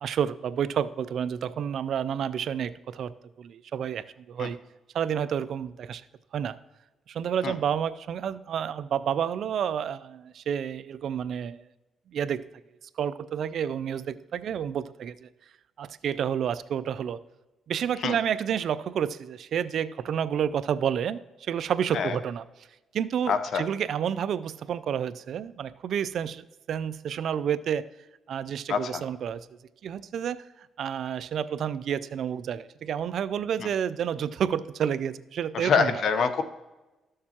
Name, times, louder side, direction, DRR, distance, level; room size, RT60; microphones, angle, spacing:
voice 1, 0.0-4.6 4.9-6.0 6.3-6.6 7.1-11.6 12.1-12.4 13.0-15.3 15.8-17.2 17.7-22.4 22.9-27.8 28.3-29.5 29.8-30.4 30.8-35.9, right 8 dB, 65° right, 15 dB, 0.4 m, -30 dB
voice 2, 23.3-23.6 28.7-29.0 33.6-33.7 35.5-36.4, left 6 dB, 65° left, 10 dB, 0.8 m, -25 dB
13.5 x 6.5 x 2.9 m, 1.1 s
cardioid pair, 90°, 0 cm